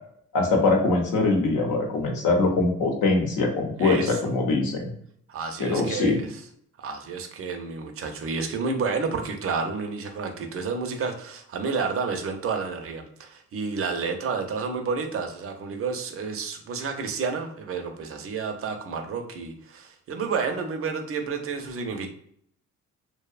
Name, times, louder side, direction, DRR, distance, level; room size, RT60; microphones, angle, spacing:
voice 1, 0.3-4.9 5.6-6.2, left 3 dB, 80° left, 2 dB, 0.7 m, -23 dB
voice 2, 3.8-4.2 5.3-6.4 6.8-22.1, right 5 dB, 50° right, 4 dB, 0.5 m, -30 dB
2.7 x 2.0 x 2.4 m, 0.67 s
cardioid pair, 90°, 30 cm